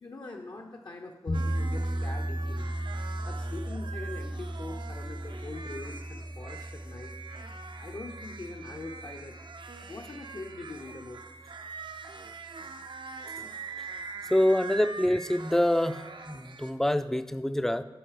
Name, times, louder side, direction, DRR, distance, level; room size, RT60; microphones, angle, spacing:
voice 1, 0.0-2.7 3.3-7.2 7.8-9.4 9.9-11.2 13.4-13.5, left 2 dB, 55° left, 1 dB, 0.6 m, -43 dB
sound 1, 1.3-11.3, right 1 dB, 75° left, 1.8 m, -36 dB
sound 2, 1.3-16.7, right 4 dB, 60° right, 0.4 m, -44 dB
voice 2, 14.3-16.0 16.3-17.8, left 1 dB, 5° left, 11 dB, 0.3 m, -25 dB
7.7 x 3.9 x 4.9 m, 1.2 s
wide cardioid pair, 60°, 9 cm